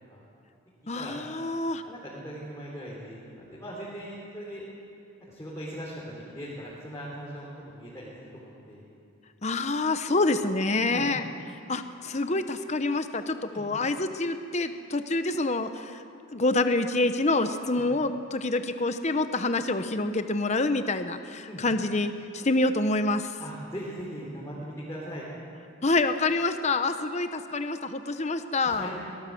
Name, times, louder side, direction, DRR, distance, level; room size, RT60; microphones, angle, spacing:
voice 1, 0.9-1.8 9.4-11.2 11.7-16.0 16.3-23.3 25.8-28.9, left 2 dB, 30° left, 9 dB, 0.8 m, -27 dB
voice 2, 1.8-4.6 5.3-8.8 10.8-11.1 13.5-13.7 17.7-17.8 21.5-21.6 23.4-25.2 28.6-28.9, equal, 15° left, -7 dB, 3.7 m, -39 dB
23.5 x 18.0 x 7.7 m, 2.7 s
head